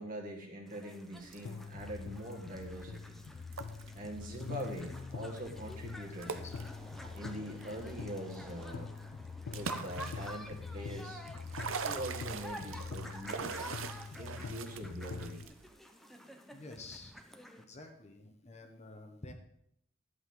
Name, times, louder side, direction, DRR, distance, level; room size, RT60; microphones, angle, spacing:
voice 1, 0.0-3.2 3.9-6.4 7.1-8.9 9.4-11.2 11.8-13.6 14.2-15.5, right 1 dB, 45° right, 0 dB, 1.9 m, -43 dB
sound 1, 0.7-17.6, equal, ahead, 0.7 m, -51 dB
sound 2, 1.2-15.7, right 5 dB, 80° right, 0.7 m, -45 dB
sound 3, 1.4-15.4, left 5 dB, 60° left, 0.4 m, -44 dB
voice 2, 4.6-5.0 6.1-6.6 16.5-17.1 17.6-19.3, left 2 dB, 35° left, 4 dB, 1.1 m, -50 dB
11.5 x 8.0 x 3.8 m, 0.72 s
head